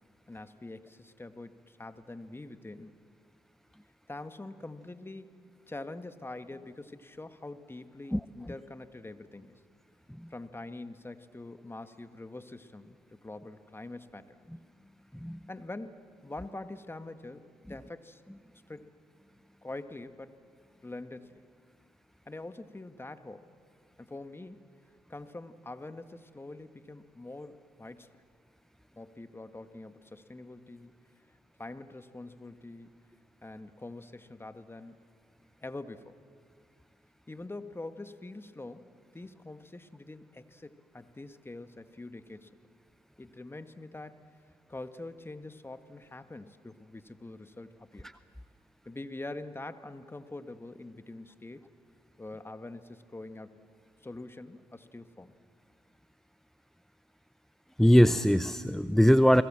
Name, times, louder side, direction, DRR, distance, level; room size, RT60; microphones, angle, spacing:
voice 1, 0.3-3.0 4.1-9.6 10.3-14.5 15.5-18.2 18.7-18.9 19.6-20.3 20.8-21.4 22.3-23.5 24.0-24.6 25.1-28.1 29.0-31.0 31.6-32.9 33.4-35.0 35.6-36.1 37.3-38.9 39.1-42.5 43.2-44.2 44.7-48.1 48.8-51.7 52.2-53.5 54.0-55.3, left 2 dB, 20° left, 10 dB, 1.7 m, -44 dB
voice 2, 57.8-59.4, equal, 5° left, 14 dB, 0.7 m, -21 dB
29.5 x 21.5 x 7.6 m, 2.2 s
hypercardioid pair, 45°, 12 cm